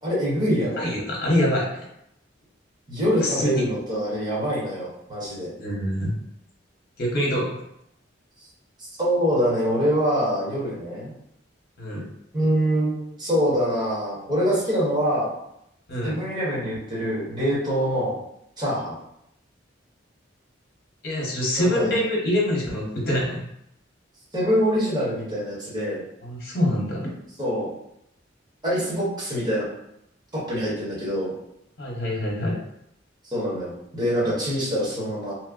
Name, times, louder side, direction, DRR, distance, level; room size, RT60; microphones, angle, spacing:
voice 1, 0.0-0.9 2.9-5.5 9.0-11.1 12.3-15.3 16.0-18.2 18.6-19.0 21.5-22.0 24.3-26.0 27.4-27.7 28.6-29.7 30.3-31.3 33.2-35.3, equal, 25° right, -9 dB, 1.3 m, -24 dB
voice 2, 0.8-1.9 3.2-3.6 5.6-6.2 7.0-7.6 11.8-12.0 15.9-16.2 21.0-23.5 26.2-27.1 31.8-32.6, left 1 dB, 55° left, -3 dB, 0.9 m, -25 dB
3.0 x 2.1 x 3.7 m, 0.77 s
head